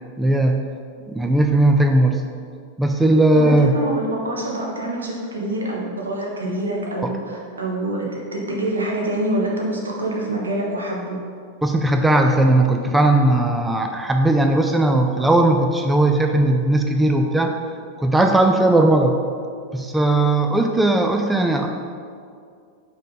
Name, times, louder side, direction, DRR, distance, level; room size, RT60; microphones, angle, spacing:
voice 1, 0.2-0.6 1.1-2.2 2.8-3.7 11.6-17.5 18.0-19.2 19.7-21.7, right 2 dB, 5° right, 3 dB, 0.4 m, -17 dB
voice 2, 3.3-11.2, right 1 dB, 75° right, -2 dB, 1.1 m, -26 dB
5.2 x 3.7 x 5.6 m, 2.3 s
figure-of-eight pair, 90°, 0 cm